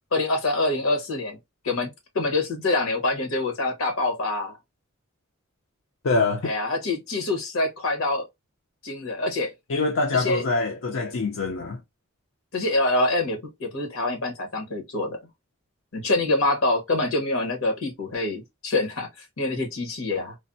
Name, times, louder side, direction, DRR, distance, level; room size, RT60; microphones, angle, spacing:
voice 1, 0.1-1.4 1.6-1.9 2.1-4.6 6.4-8.3 8.8-9.5 10.1-10.4 12.5-15.2 15.9-19.1 19.4-20.4, left 2 dB, 85° left, 1.1 m, -25 dB
voice 2, 6.0-6.5 9.7-11.8, left 3 dB, 65° left, 0.5 m, -24 dB
3.3 x 2.0 x 2.5 m
head